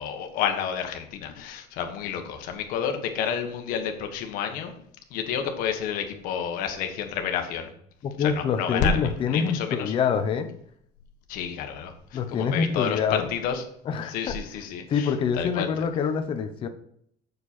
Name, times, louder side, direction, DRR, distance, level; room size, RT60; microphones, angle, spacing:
voice 1, 0.0-4.7 5.1-7.7 8.2-9.9 11.3-13.6 14.0-15.7, left 7 dB, 60° left, 5 dB, 1.4 m, -30 dB
voice 2, 8.0-10.5 12.1-13.3 13.8-14.4 14.9-16.7, left 6 dB, 30° left, 7 dB, 0.8 m, -26 dB
7.3 x 6.7 x 4.3 m, 0.66 s
cardioid pair, 180°, 17 cm